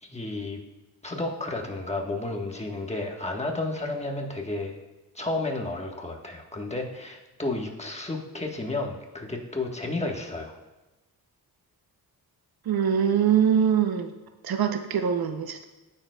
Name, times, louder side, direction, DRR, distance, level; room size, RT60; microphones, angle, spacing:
voice 1, 0.0-0.6 1.0-4.8 5.1-10.6, left 2 dB, 15° left, 1 dB, 1.3 m, -32 dB
voice 2, 12.6-14.1 14.4-15.6, right 8 dB, 70° right, 8 dB, 0.7 m, -23 dB
16.0 x 6.7 x 2.3 m, 1.1 s
wide cardioid pair, 95°, 38 cm